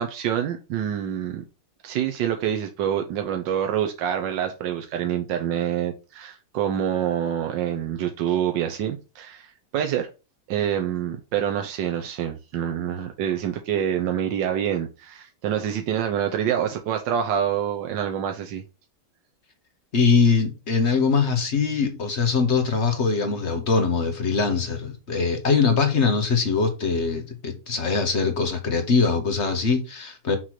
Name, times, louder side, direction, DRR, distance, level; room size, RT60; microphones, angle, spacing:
voice 1, 0.0-1.4 1.8-10.1 10.5-18.6, right 9 dB, 90° right, 1.5 m, -26 dB
voice 2, 19.9-30.4, left 5 dB, 45° left, 1.3 m, -22 dB
6.0 x 3.2 x 5.8 m
omnidirectional pair, 1.9 m